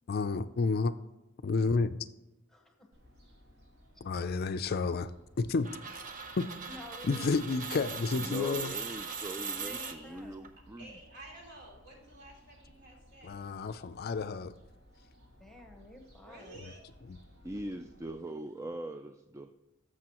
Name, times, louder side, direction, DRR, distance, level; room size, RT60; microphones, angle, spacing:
voice 1, 0.1-0.9 1.4-2.0 4.0-5.1 5.4-5.7 6.4-6.5 7.0-8.7 13.2-14.5 16.6-16.7 17.1-17.2, left 4 dB, 50° left, 11 dB, 0.4 m, -30 dB
voice 2, 2.5-2.9 6.6-7.6 7.8-8.5 9.5-10.5 15.4-16.7, left 1 dB, ahead, 2 dB, 1.2 m, -51 dB
Fowl, 2.9-18.1, equal, 75° right, 2.2 m, -59 dB
sound 1, 5.6-10.5, right 5 dB, 40° right, 0.8 m, -40 dB
voice 3, 8.1-11.0 17.4-19.5, right 1 dB, 15° right, 8 dB, 0.3 m, -41 dB
voice 4, 9.7-10.1 10.8-13.4 16.2-16.8, right 1 dB, 55° right, -1 dB, 2.9 m, -51 dB
13.5 x 6.3 x 3.0 m, 1.0 s
head